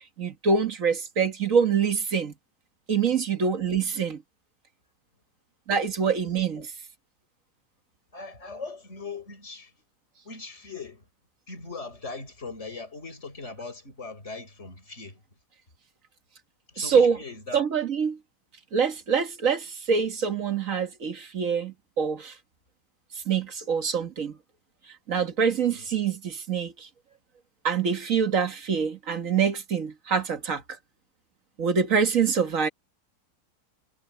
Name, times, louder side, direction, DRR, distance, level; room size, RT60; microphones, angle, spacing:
voice 1, 0.2-2.3 2.9-4.2 5.7-6.7 16.8-17.2 17.5-18.2 18.7-22.3 23.3-24.4 25.1-26.9 27.6-30.6 31.6-32.7, right 6 dB, 55° right, 1.8 m, -25 dB
voice 2, 8.1-9.7 10.2-11.1 11.5-15.2 16.7-17.6 25.6-25.9, left 3 dB, 45° left, 5.9 m, -40 dB
omnidirectional pair, 1.7 m